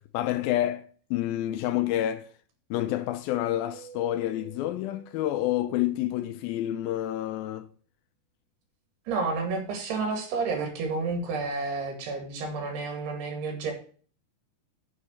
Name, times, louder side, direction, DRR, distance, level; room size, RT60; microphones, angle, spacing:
voice 1, 0.1-2.3 2.7-7.7, left 13 dB, 85° left, 2.2 m, -28 dB
Keyboard (musical), 3.7-6.3, right 6 dB, 65° right, 3.1 m, -51 dB
voice 2, 9.1-13.7, right 4 dB, 85° right, 4.2 m, -30 dB
9.7 x 6.1 x 5.3 m
omnidirectional pair, 4.7 m